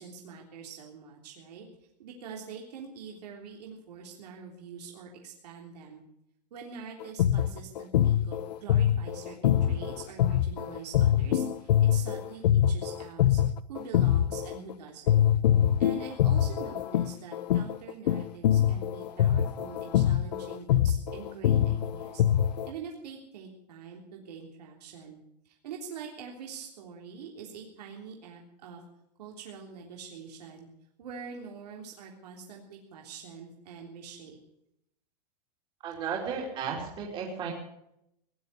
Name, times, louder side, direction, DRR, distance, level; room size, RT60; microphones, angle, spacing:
voice 1, 0.0-1.7 2.0-6.0 6.5-13.4 13.7-15.2 15.8-22.2 22.6-25.2 25.4-28.8 29.2-30.7 31.0-34.4, right 6 dB, 70° right, 0 dB, 3.5 m, -44 dB
sound 1, 7.0-14.7 15.1-22.7, left 10 dB, 70° left, 0.9 m, -24 dB
voice 2, 35.8-37.5, right 6 dB, 25° right, -2 dB, 3.2 m, -34 dB
18.5 x 11.0 x 6.9 m, 0.79 s
supercardioid pair, 170°, 21 cm